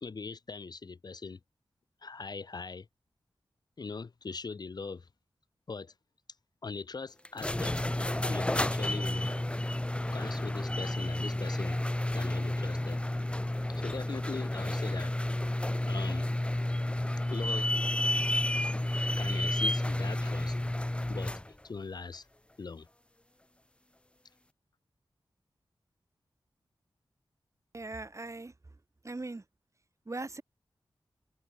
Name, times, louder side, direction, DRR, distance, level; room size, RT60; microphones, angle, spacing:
voice 1, 0.0-1.4 2.0-2.9 3.8-5.1 5.7-5.9 6.6-7.8 8.3-9.3 10.1-11.8 12.1-13.0 13.7-15.1 15.9-16.3 17.3-17.7 19.2-20.6 21.1-21.4 21.6-22.3 22.6-22.9, left 4 dB, 50° left, 0.6 m, -41 dB
sound 1, 7.2-21.5, left 1 dB, 10° left, 0.7 m, -31 dB
voice 2, 27.7-28.5 29.0-29.4 30.1-30.4, right 2 dB, 35° right, 1.7 m, -39 dB
cardioid pair, 60°, 9 cm